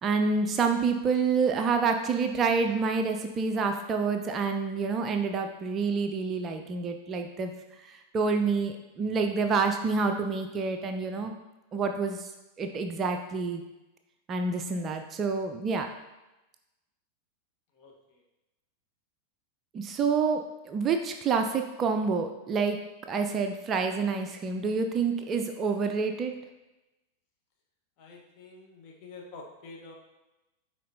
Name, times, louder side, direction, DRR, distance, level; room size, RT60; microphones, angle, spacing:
voice 1, 0.0-7.5 7.8-11.3 11.7-12.3 12.6-13.6 14.3-15.9 19.7-22.8 23.0-26.3, right 4 dB, 25° right, 5 dB, 0.4 m, -28 dB
voice 2, 28.0-29.9, left 3 dB, 40° left, -1 dB, 1.2 m, -47 dB
9.2 x 3.7 x 2.7 m, 1.0 s
figure-of-eight pair, 90°, 0 cm